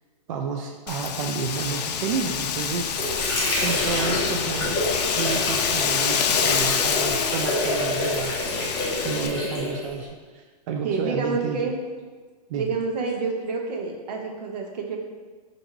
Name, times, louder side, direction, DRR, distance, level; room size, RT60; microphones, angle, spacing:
voice 1, 0.3-2.9 3.6-4.8 5.1-8.3 9.0-11.7 12.5-12.7, right 6 dB, 55° right, 2 dB, 0.4 m, -31 dB
Wind, 0.9-9.3, left 7 dB, 80° left, 0.4 m, -27 dB
Water / Sink (filling or washing), 2.4-10.1, left 1 dB, 20° left, 1.1 m, -27 dB
voice 2, 10.8-11.8 12.5-15.0, right 4 dB, 80° right, 2 dB, 0.8 m, -28 dB
3.8 x 2.6 x 4.5 m, 1.4 s
hypercardioid pair, 140°, 21 cm